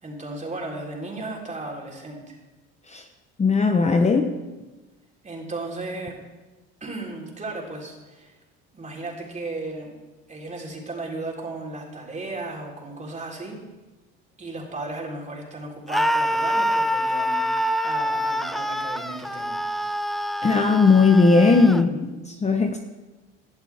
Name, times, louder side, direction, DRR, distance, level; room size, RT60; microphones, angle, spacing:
voice 1, 0.0-2.4 5.2-6.2 6.8-8.3 8.7-9.9 10.3-13.6 14.4-17.4 17.8-19.6 21.5-22.1, right 2 dB, 25° right, -2 dB, 3.9 m, -35 dB
voice 2, 3.4-4.3 20.4-21.9 22.3-22.8, left 4 dB, 20° left, 5 dB, 0.9 m, -17 dB
Screaming, 15.9-21.8, equal, ahead, 0.5 m, -26 dB
18.0 x 11.0 x 3.6 m, 1.2 s
supercardioid pair, 90°, 31 cm